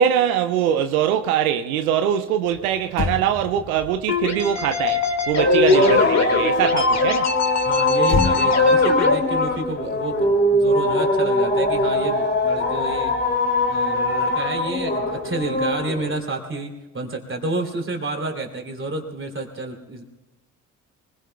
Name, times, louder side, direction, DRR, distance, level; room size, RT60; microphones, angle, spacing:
voice 1, 0.0-7.3, right 9 dB, 85° right, 0.6 m, -22 dB
Motor vehicle (road), 2.5-2.6 2.9-6.4 8.0-10.6 10.9-11.2, left 5 dB, 60° left, 1.4 m, -31 dB
sound 1, 4.1-9.1, left 5 dB, 40° left, 2.1 m, -22 dB
sound 2, 5.4-16.2, left 1 dB, 25° left, 2.9 m, -21 dB
voice 2, 7.6-13.1 13.7-20.0, right 2 dB, 30° right, 3.1 m, -30 dB
24.0 x 21.0 x 2.3 m
hypercardioid pair, 45°, 42 cm